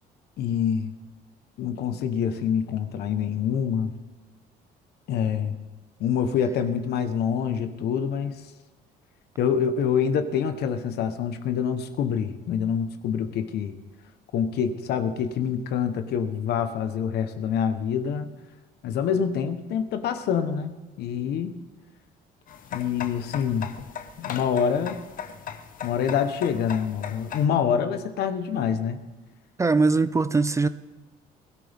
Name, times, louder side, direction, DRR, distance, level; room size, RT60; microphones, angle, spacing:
voice 1, 0.4-0.9 1.6-3.9 5.1-5.5 6.0-8.3 9.4-13.8 14.3-18.3 18.8-21.6 22.7-23.7 24.2-25.0 25.8-29.0, left 7 dB, 75° left, 9 dB, 1.2 m, -26 dB
sound 1, 22.5-27.5, left 8 dB, 55° left, 1.0 m, -38 dB
voice 2, 29.6-30.7, right 3 dB, 15° right, 14 dB, 0.4 m, -21 dB
21.0 x 13.0 x 3.6 m, 1.2 s
cardioid pair, 110°, 17 cm